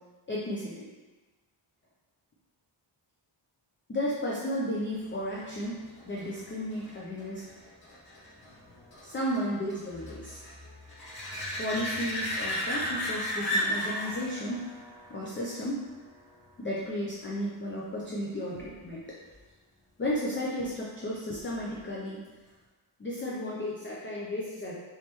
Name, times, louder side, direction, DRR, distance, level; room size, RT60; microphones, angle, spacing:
voice 1, 0.3-0.9 3.9-5.8 6.1-7.4 9.0-10.4 11.6-14.6 15.1-15.8 16.6-19.0 20.0-22.2 23.0-24.7, equal, 25° left, -5 dB, 0.3 m, -33 dB
sound 1, 5.3-16.6 22.2-22.3, equal, 45° left, 1.0 m, -36 dB
3.2 x 3.1 x 2.9 m, 1.3 s
wide cardioid pair, 170°, 50 cm